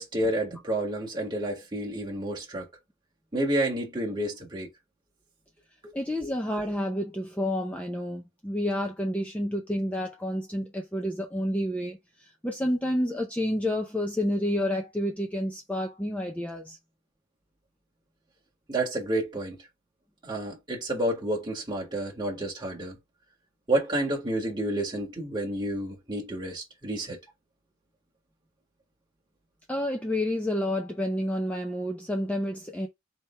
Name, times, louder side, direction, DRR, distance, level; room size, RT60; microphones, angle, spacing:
voice 1, 0.0-2.7 3.3-4.7 5.8-5.9 18.7-19.6 20.2-23.0 23.7-27.2, right 1 dB, 20° right, 1.7 m, -30 dB
voice 2, 5.9-16.8 29.7-32.9, left 1 dB, 5° left, 0.6 m, -29 dB
4.3 x 3.3 x 3.2 m
head